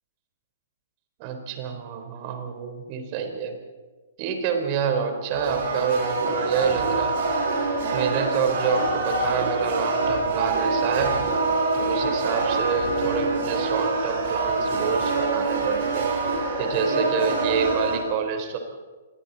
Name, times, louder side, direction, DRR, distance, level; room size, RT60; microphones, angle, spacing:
voice 1, 1.2-3.6 4.2-7.2 7.9-11.3 11.7-16.1 16.6-18.6, right 6 dB, 40° right, 5 dB, 4.3 m, -27 dB
sound 1, 5.3-18.0, right 3 dB, 55° right, 7.1 m, -25 dB
28.0 x 23.0 x 4.3 m, 1.3 s
hypercardioid pair, 125°, 0 cm